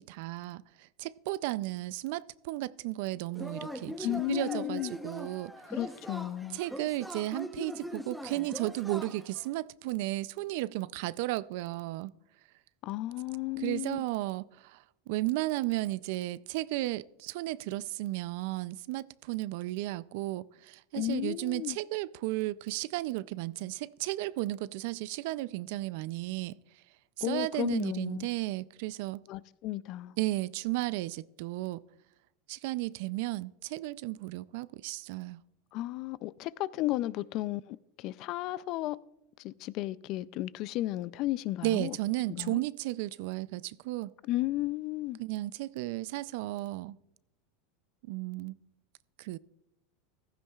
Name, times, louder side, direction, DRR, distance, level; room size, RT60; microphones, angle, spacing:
voice 1, 0.0-5.5 6.5-12.1 13.6-26.6 27.2-29.2 30.2-31.8 32.5-35.4 41.6-44.1 45.2-47.0 48.0-48.6 49.2-49.4, right 18 dB, 65° right, 0.4 m, -34 dB
Yell / Cheering, 3.3-9.5, equal, ahead, 0.8 m, -42 dB
voice 2, 4.0-4.9 5.7-6.6 12.8-14.0 20.9-21.8 27.2-28.3 29.3-30.1 35.7-39.0 39.4-42.0 42.3-42.6 44.3-45.2, left 16 dB, 50° left, 0.4 m, -34 dB
15.5 x 14.0 x 2.4 m
supercardioid pair, 135°, 0 cm